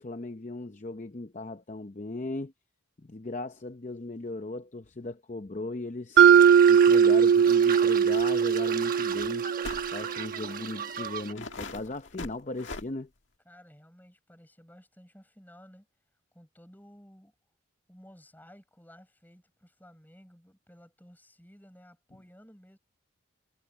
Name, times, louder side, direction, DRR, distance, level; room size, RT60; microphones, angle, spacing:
voice 1, 0.0-2.5 3.0-6.3 6.7-9.5 9.9-13.1, left 2 dB, 35° left, 0.7 m, -37 dB
sound 1, 6.2-11.3, right 7 dB, 40° right, 1.2 m, -37 dB
Mallet percussion, 6.2-10.2, right 7 dB, 65° right, 0.4 m, -20 dB
sound 2, 8.1-8.3 8.5-8.6 9.6-9.9 10.7-10.8 11.4-12.9, left 3 dB, 60° left, 2.1 m, -40 dB
voice 2, 13.4-15.9 16.3-17.3 17.9-22.8, equal, 10° left, 7.3 m, -55 dB
head